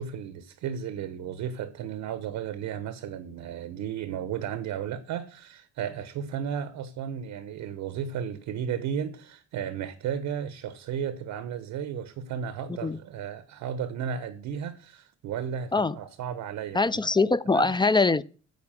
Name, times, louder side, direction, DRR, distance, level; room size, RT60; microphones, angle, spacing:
voice 1, 0.0-17.0 17.5-17.7, right 8 dB, 85° right, 1.0 m, -34 dB
voice 2, 16.7-18.2, left 3 dB, 15° left, 0.5 m, -23 dB
9.5 x 4.8 x 7.5 m
cardioid pair, 90°, 30 cm